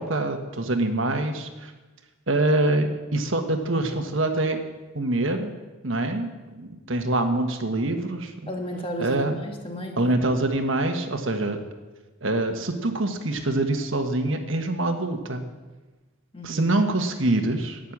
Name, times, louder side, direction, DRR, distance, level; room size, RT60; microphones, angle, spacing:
voice 1, 0.0-1.7 2.3-4.6 4.9-5.5 5.8-8.5 9.0-9.4 10.0-11.6 12.2-15.4 16.4-17.8, right 2 dB, 60° right, 5 dB, 1.4 m, -25 dB
voice 2, 8.5-10.2 16.3-16.6, equal, 25° left, 2 dB, 1.7 m, -33 dB
13.0 x 10.0 x 7.4 m, 1.2 s
head